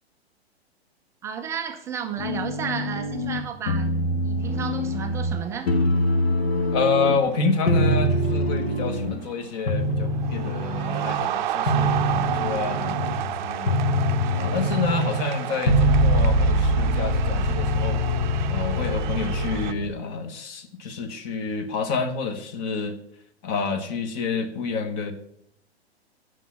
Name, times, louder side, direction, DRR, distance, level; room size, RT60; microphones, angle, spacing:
voice 1, 1.2-5.7, right 7 dB, 10° right, 5 dB, 0.3 m, -33 dB
sound 1, 2.2-3.4 3.7-5.4 5.7-7.3 7.7-9.3 9.7-11.3 11.7-19.9, equal, 70° left, 1.7 m, -24 dB
sound 2, 4.5-4.9 5.2-5.7 6.6-6.9 7.3-9.5 9.8-19.7, right 12 dB, 45° right, 0.6 m, -32 dB
voice 2, 6.7-13.7 14.3-18.0 18.4-23.0 23.4-25.1, left 4 dB, 40° left, 9 dB, 1.4 m, -28 dB
9.7 x 6.4 x 5.8 m, 0.72 s
figure-of-eight pair, 115°, 33 cm